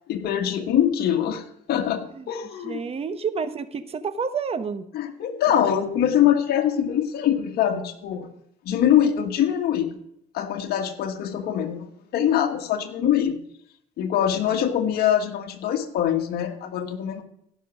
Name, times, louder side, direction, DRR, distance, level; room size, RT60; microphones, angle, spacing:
voice 1, 0.1-2.8 4.9-8.3 8.6-10.0 10.3-11.9 12.1-13.3 14.0-17.2, left 10 dB, 70° left, 4 dB, 1.5 m, -23 dB
voice 2, 2.6-4.9, right 5 dB, 35° right, 11 dB, 1.0 m, -29 dB
16.0 x 6.1 x 6.2 m, 0.73 s
cardioid pair, 110°, 17 cm